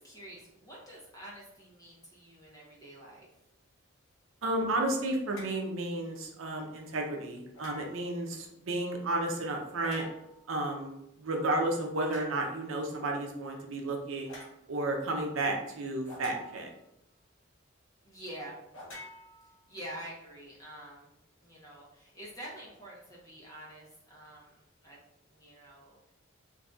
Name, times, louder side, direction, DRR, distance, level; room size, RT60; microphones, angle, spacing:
voice 1, 0.0-3.3 18.0-18.6 19.4-21.1 21.4-25.0 25.3-26.1, right 1 dB, 15° left, -5 dB, 0.9 m, -47 dB
voice 2, 4.4-10.0 10.5-14.3 14.7-16.7, right 2 dB, 80° right, 1 dB, 0.6 m, -32 dB
sound 1, 5.3-5.6 7.5-8.2 9.8-10.4 12.1-12.4 14.3-14.6 16.1-16.8 18.7-19.9, left 1 dB, 75° left, 0.9 m, -48 dB
3.9 x 2.6 x 2.4 m, 0.85 s
head